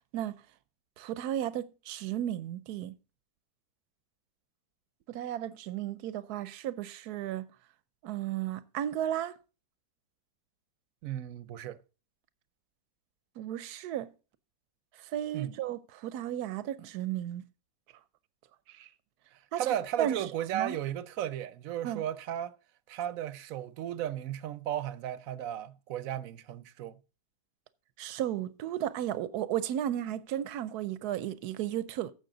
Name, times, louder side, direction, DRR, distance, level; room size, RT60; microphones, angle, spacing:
voice 1, 1.0-2.9 5.1-7.5 8.0-9.4 13.4-14.1 15.0-17.4 18.7-18.9 19.5-19.6 20.0-20.2 20.5-20.8 21.8-22.0 28.0-32.1, right 11 dB, 85° right, 1.2 m, -34 dB
voice 2, 11.0-11.8 15.3-15.6 19.6-22.5 22.9-27.0, right 11 dB, 70° right, 1.0 m, -35 dB
15.0 x 5.9 x 3.8 m
omnidirectional pair, 1.6 m